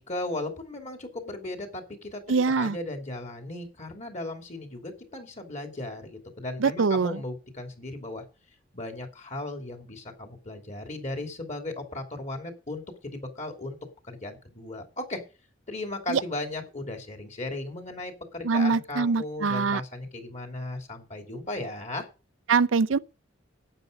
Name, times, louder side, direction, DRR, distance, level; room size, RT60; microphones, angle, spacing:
voice 1, 0.0-8.2 8.7-13.8 14.0-15.2 15.7-22.1, left 2 dB, 40° left, 2.9 m, -36 dB
voice 2, 2.3-2.8 6.6-7.2 16.1-16.2 18.4-19.8 22.5-23.0, right 4 dB, 85° right, 0.5 m, -23 dB
12.0 x 9.1 x 5.2 m
head